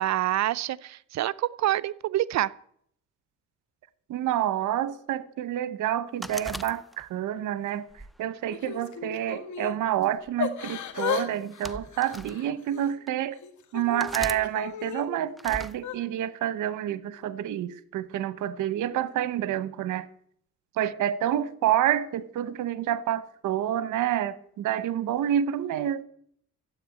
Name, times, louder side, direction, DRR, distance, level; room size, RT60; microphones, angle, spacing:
voice 1, 0.0-2.5, right 13 dB, 65° right, 0.6 m, -27 dB
voice 2, 4.1-7.8 8.2-13.4 13.7-20.1 20.8-26.0, right 11 dB, 80° right, 0.9 m, -28 dB
sound 1, 6.2-7.3 7.9-9.1 10.0-10.3 11.3-12.4 13.1-13.2 14.0-14.4 15.4-15.7, equal, ahead, 0.6 m, -39 dB
Yell / Crying sobbing, 8.5-9.8 10.4-11.3 11.5-12.9 13.4-15.0 15.7-16.0, left 8 dB, 70° left, 1.8 m, -34 dB
12.5 x 8.6 x 8.4 m
cardioid pair, 90°, 30 cm